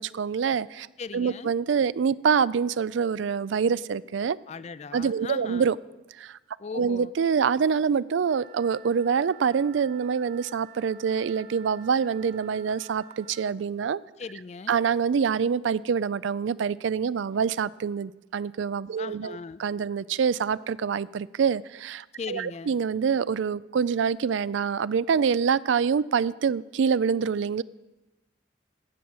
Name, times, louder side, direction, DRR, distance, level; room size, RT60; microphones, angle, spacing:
voice 1, 0.0-0.9 1.1-4.4 4.9-5.8 6.2-6.4 6.7-14.0 14.7-27.6, right 6 dB, 70° right, 20 dB, 0.4 m, -26 dB
voice 2, 1.0-1.5 4.5-5.7 6.6-7.2 14.2-14.8 19.0-19.6 22.2-22.8, left 5 dB, 35° left, 17 dB, 0.4 m, -38 dB
Wind instrument woodwind instrument, 8.2-13.5, right 7 dB, 35° right, 1.1 m, -50 dB
15.5 x 6.2 x 8.7 m, 1.1 s
head